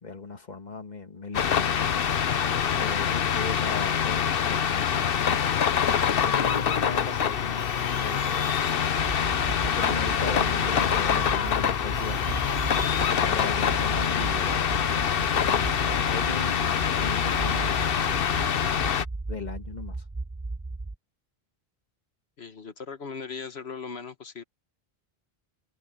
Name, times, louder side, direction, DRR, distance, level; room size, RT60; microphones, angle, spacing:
voice 1, 0.0-1.9 2.8-5.1 6.2-8.5 9.6-12.5 13.3-15.1 16.0-18.3 19.3-20.0, left 4 dB, 45° left, 1.8 m, -37 dB
sound 1, 1.3-19.0, left 8 dB, 65° left, 1.0 m, -25 dB
sound 2, 9.0-20.9, right 2 dB, 15° right, 0.4 m, -36 dB
voice 2, 22.4-24.4, left 5 dB, 85° left, 1.7 m, -38 dB
omnidirectional pair, 1.0 m